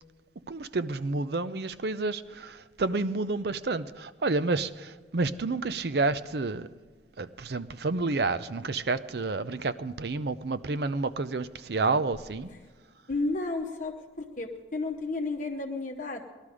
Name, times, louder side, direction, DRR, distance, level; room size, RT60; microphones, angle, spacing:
voice 1, 0.5-6.7 7.2-12.5, right 3 dB, 60° right, 14 dB, 0.6 m, -30 dB
voice 2, 13.1-14.0 14.4-16.2, left 3 dB, 45° left, 2 dB, 0.9 m, -32 dB
19.0 x 12.0 x 4.9 m, 1.4 s
head